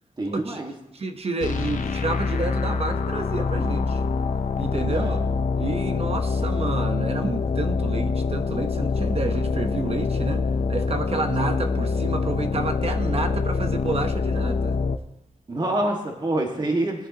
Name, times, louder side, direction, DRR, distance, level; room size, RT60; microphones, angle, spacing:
voice 1, 0.2-0.7 4.9-5.2 11.4-11.6 15.5-17.1, right 1 dB, 35° right, 1 dB, 1.7 m, -26 dB
voice 2, 0.9-4.0 4.6-5.2 5.6-14.8, right 3 dB, 50° right, 7 dB, 1.0 m, -30 dB
sound 1, 1.4-15.0, left 4 dB, 80° left, 0.6 m, -25 dB
19.0 x 10.5 x 2.9 m, 0.87 s
wide cardioid pair, 130°, 13 cm